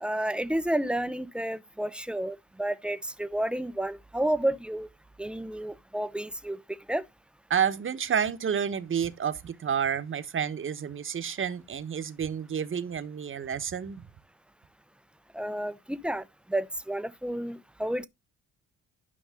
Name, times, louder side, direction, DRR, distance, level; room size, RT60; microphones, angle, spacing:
voice 1, 0.0-4.9 5.2-6.6 6.9-7.0 15.3-16.2 16.5-18.1, right 1 dB, 5° right, 0.7 m, -31 dB
voice 2, 7.5-14.0, right 7 dB, 40° right, 1.2 m, -30 dB
11.0 x 5.4 x 3.7 m
cardioid pair, 90°, 30 cm